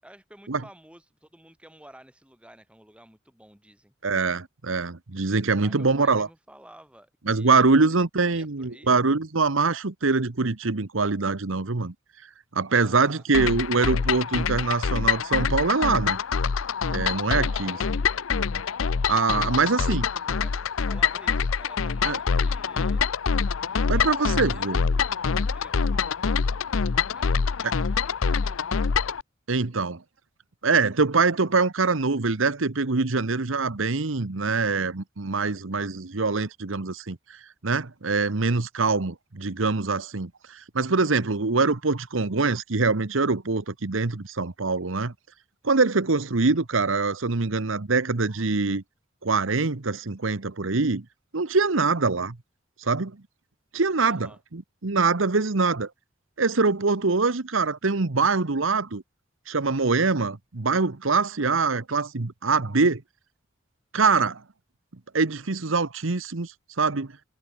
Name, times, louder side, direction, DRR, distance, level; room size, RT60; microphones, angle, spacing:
voice 1, 0.0-3.9 5.5-9.0 12.8-13.3 17.3-17.9 19.3-23.0 23.7-26.2 27.1-28.6 54.0-54.4, right 1 dB, 5° right, 6.7 m, -51 dB
voice 2, 4.0-6.3 7.3-11.9 12.5-16.2 16.9-17.8 18.5-18.6 19.1-20.0 22.0-22.2 23.9-24.8 29.5-30.0 30.6-45.1 45.6-48.8 49.2-51.0 51.3-52.4 52.8-53.2 53.7-55.9 56.4-59.0 59.5-63.0 63.9-64.4 65.1-66.5 66.8-67.1, right 4 dB, 75° right, 1.1 m, -24 dB
sound 1, 13.3-29.2, left 5 dB, 90° left, 0.6 m, -25 dB
head